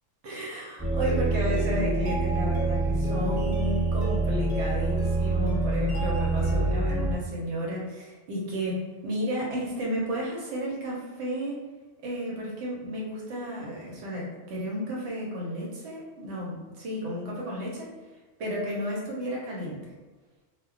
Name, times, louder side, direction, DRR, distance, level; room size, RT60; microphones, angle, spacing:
voice 1, 0.2-11.6 12.0-17.9 18.4-19.9, equal, 80° right, -4 dB, 0.9 m, -32 dB
sound 1, 0.8-7.2, right 2 dB, 5° right, 0.9 m, -26 dB
2.2 x 2.0 x 3.5 m, 1.2 s
omnidirectional pair, 1.2 m